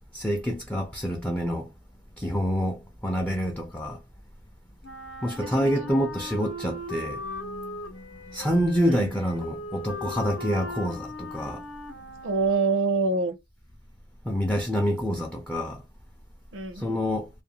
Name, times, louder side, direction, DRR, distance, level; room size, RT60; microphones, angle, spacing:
voice 1, 0.1-1.7 2.2-4.0 5.2-11.6 14.2-15.8 16.7-17.3, equal, 5° left, 0.4 m, -27 dB
Wind instrument woodwind instrument, 4.8-13.1, left 2 dB, 75° left, 0.8 m, -39 dB
voice 2, 5.4-6.0 8.9-9.1 12.2-13.3 16.5-16.8, right 4 dB, 90° right, 0.6 m, -26 dB
2.5 x 2.1 x 2.8 m
head